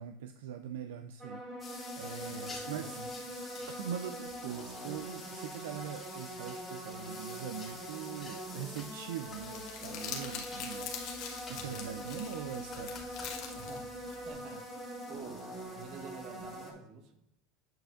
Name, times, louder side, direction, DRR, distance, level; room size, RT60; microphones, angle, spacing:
voice 1, 0.0-3.0 3.7-13.0, right 8 dB, 85° right, 9 dB, 0.3 m, -42 dB
sound 1, 1.2-16.7, equal, 25° right, 2.2 m, -44 dB
sound 2, 1.6-16.7, left 3 dB, 20° left, 1.9 m, -50 dB
voice 2, 2.2-3.1 11.5-12.1 13.5-13.9 14.2-14.7 15.1-17.1, right 5 dB, 60° right, 5 dB, 1.2 m, -49 dB
Crumpling crinkling, 9.2-14.3, left 7 dB, 60° left, 1.2 m, -44 dB
8.8 x 5.1 x 2.4 m, 0.77 s
supercardioid pair, 115°, 0 cm